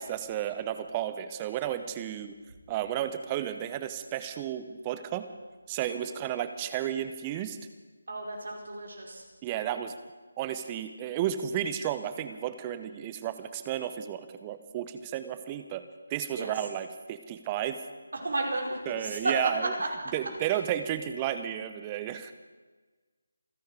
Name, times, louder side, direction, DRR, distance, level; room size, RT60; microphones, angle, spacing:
voice 1, 0.0-2.3 2.7-5.3 5.7-7.6 9.4-9.9 10.4-15.8 16.1-17.8 18.9-19.6 20.1-22.3, right 11 dB, 20° right, 10 dB, 0.8 m, -32 dB
voice 2, 8.1-9.2 16.3-16.5 18.1-19.2 19.8-19.9 20.2-20.3, right 2 dB, 65° right, 0 dB, 4.7 m, -34 dB
27.5 x 10.5 x 4.9 m, 1.3 s
figure-of-eight pair, 155°, 0 cm